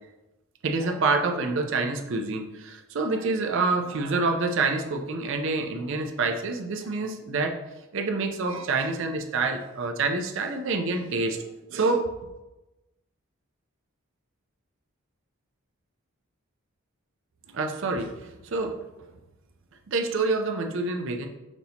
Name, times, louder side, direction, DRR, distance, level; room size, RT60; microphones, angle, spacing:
voice 1, 0.6-7.6 7.9-12.1 17.5-18.8 19.9-21.3, right 3 dB, 55° right, 4 dB, 0.4 m, -27 dB
5.9 x 2.7 x 2.8 m, 1.0 s
head